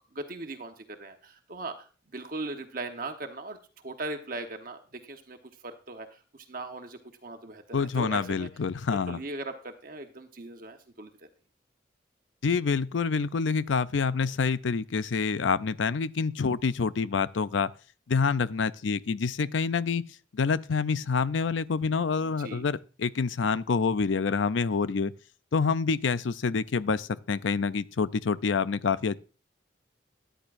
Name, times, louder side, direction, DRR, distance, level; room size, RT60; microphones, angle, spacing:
voice 1, 0.1-1.9 2.1-5.4 5.6-8.5 8.9-11.3 22.2-22.6, right 2 dB, 50° right, 1.1 m, -39 dB
voice 2, 7.7-9.2 12.4-17.7 18.1-20.0 20.3-25.1 25.5-29.2, left 5 dB, 85° left, 0.5 m, -27 dB
13.5 x 10.0 x 2.6 m
head